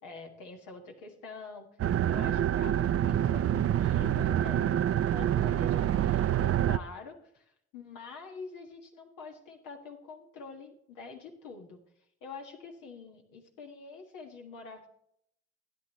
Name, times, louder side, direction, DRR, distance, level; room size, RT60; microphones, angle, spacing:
voice 1, 0.0-1.7 2.1-4.8 5.1-11.8 12.2-14.9, left 4 dB, 85° left, 2 dB, 1.7 m, -46 dB
sound 1, 1.8-6.8, right 11 dB, 50° right, 0.5 m, -27 dB
12.5 x 9.9 x 3.1 m, 0.71 s
hypercardioid pair, 45°, 31 cm